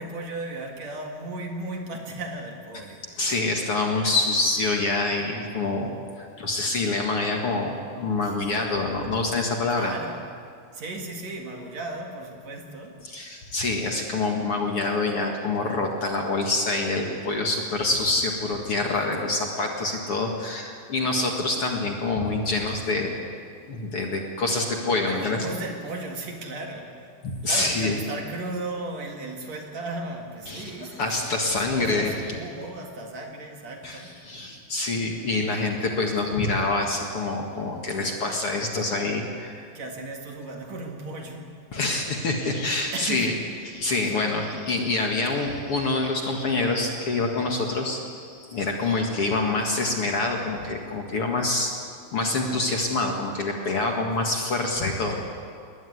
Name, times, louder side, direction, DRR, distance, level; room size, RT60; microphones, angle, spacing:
voice 1, 0.0-3.4 8.2-8.3 9.7-10.3 10.7-13.0 25.0-27.1 27.4-31.2 31.5-34.1 39.7-41.5 42.3-42.4 42.9-43.4, right 2 dB, 55° right, 2 dB, 2.9 m, -35 dB
voice 2, 3.2-9.9 13.0-23.2 23.7-25.5 27.2-28.0 30.5-30.7 31.0-32.2 33.8-39.7 41.7-43.3 43.7-51.7 52.1-55.1, left 2 dB, 45° left, 1 dB, 2.4 m, -26 dB
21.5 x 20.0 x 9.5 m, 2.3 s
omnidirectional pair, 4.1 m